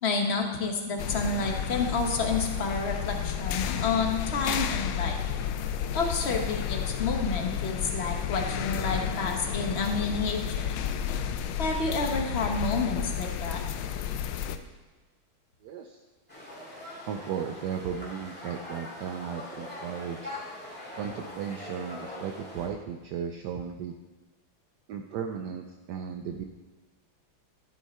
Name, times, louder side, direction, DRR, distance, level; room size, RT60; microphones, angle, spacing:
voice 1, 0.0-5.2 5.9-10.6 11.6-13.6, left 3 dB, 45° left, 3 dB, 0.9 m, -29 dB
sound 1, 1.0-14.6, left 9 dB, 80° left, 1.4 m, -31 dB
voice 2, 15.6-16.0 17.1-20.3 21.0-23.9 24.9-26.4, right 7 dB, 75° right, 5 dB, 1.0 m, -35 dB
sound 2, 16.3-22.7, left 1 dB, 5° left, 2.2 m, -42 dB
12.0 x 7.3 x 4.3 m, 1.2 s
omnidirectional pair, 2.3 m